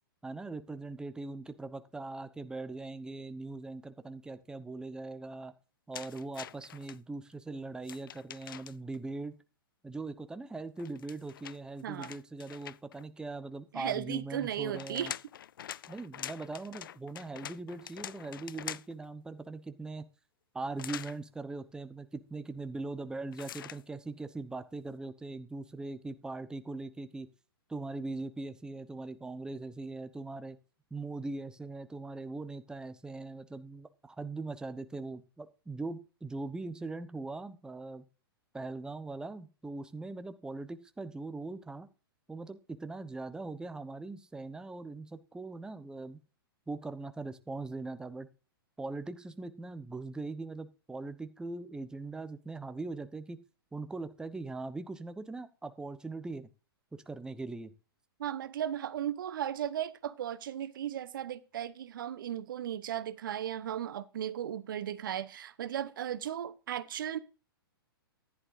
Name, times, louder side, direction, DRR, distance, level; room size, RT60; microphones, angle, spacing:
voice 1, 0.2-5.5 5.9-9.4 9.8-15.1 15.9-20.1 20.5-27.3 27.7-30.6 30.9-38.0 38.5-41.9 42.3-46.2 46.7-48.3 48.8-53.4 53.7-56.5 56.9-57.7, right 3 dB, 5° right, 1.0 m, -41 dB
sound 1, 5.9-7.0 7.8-9.0 10.8-13.0 14.4-19.1 20.8-21.2 23.3-23.8, left 10 dB, 60° left, 0.5 m, -44 dB
voice 2, 11.8-12.2 13.7-15.1 58.2-67.2, right 10 dB, 60° right, 0.9 m, -36 dB
14.5 x 11.0 x 2.7 m
figure-of-eight pair, 110°, 13 cm